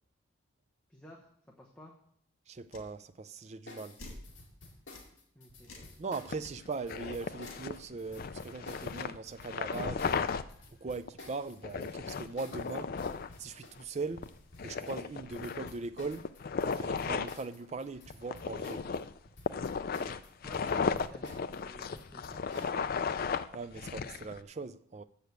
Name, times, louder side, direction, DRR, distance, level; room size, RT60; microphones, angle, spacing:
voice 1, 0.9-1.9 5.3-5.7 20.4-22.5, equal, 5° left, 0.9 m, -53 dB
voice 2, 2.5-4.0 6.0-10.3 10.8-12.9 13.4-14.3 14.6-16.3 16.6-18.8 23.5-25.0, right 4 dB, 35° right, 0.4 m, -40 dB
sound 1, 2.7-2.9 4.0-4.3 4.9-5.1 5.6-6.0 6.4-6.5 7.4-7.7, left 2 dB, 75° left, 2.2 m, -48 dB
sound 2, 3.7-19.0 19.2-22.8, left 2 dB, 60° left, 1.9 m, -52 dB
sound 3, 6.3-10.4 11.1-11.2 11.6-13.3 13.8-13.9 14.2-14.3 14.6-17.4 18.1-24.4, left 5 dB, 45° left, 0.4 m, -35 dB
7.0 x 6.6 x 7.9 m
head